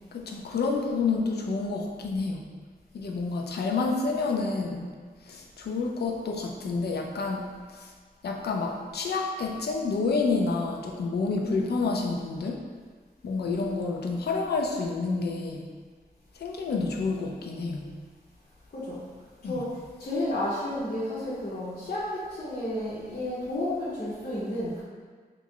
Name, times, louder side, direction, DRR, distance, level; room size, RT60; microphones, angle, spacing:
voice 1, 0.1-2.4 2.9-4.9 5.3-7.9 8.2-12.6 13.2-15.7 16.4-17.9 19.4-19.7, left 4 dB, 85° left, 2 dB, 0.4 m, -29 dB
voice 2, 11.4-11.7 18.7-19.0 19.4-24.8, left 1 dB, 60° left, -9 dB, 0.8 m, -32 dB
3.1 x 2.4 x 3.6 m, 1.6 s
wide cardioid pair, 85°, 16 cm